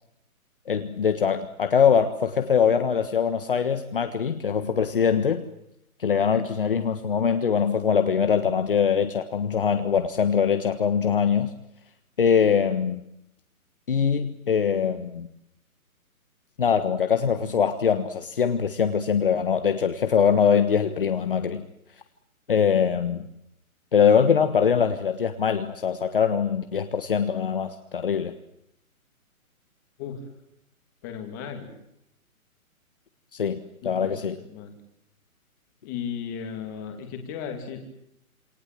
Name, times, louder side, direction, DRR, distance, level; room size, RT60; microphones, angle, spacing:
voice 1, 0.7-5.5 6.0-11.5 12.2-13.0 13.9-15.3 16.6-21.6 22.5-23.3 23.9-28.3 33.3-34.4, left 7 dB, 40° left, 8 dB, 1.4 m, -23 dB
voice 2, 31.0-31.7 33.8-34.7 35.8-37.8, left 7 dB, 15° left, 4 dB, 2.4 m, -35 dB
27.5 x 23.5 x 7.7 m, 0.80 s
hypercardioid pair, 175°, 43 cm